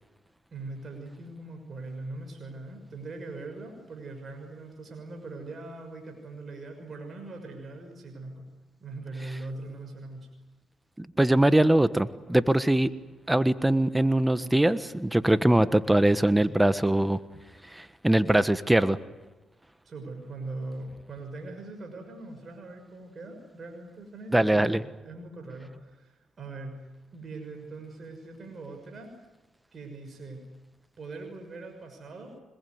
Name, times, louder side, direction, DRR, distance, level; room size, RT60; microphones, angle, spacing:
voice 1, 0.5-8.4 8.8-10.3 19.8-26.7 27.1-29.3 29.7-30.4 31.0-32.4, right 2 dB, 50° right, 4 dB, 6.3 m, -41 dB
voice 2, 11.0-12.9 13.3-17.2 17.7-19.0 24.3-24.8, right 1 dB, 10° right, 13 dB, 1.4 m, -22 dB
26.0 x 21.0 x 9.6 m, 1.1 s
supercardioid pair, 60°, 0 cm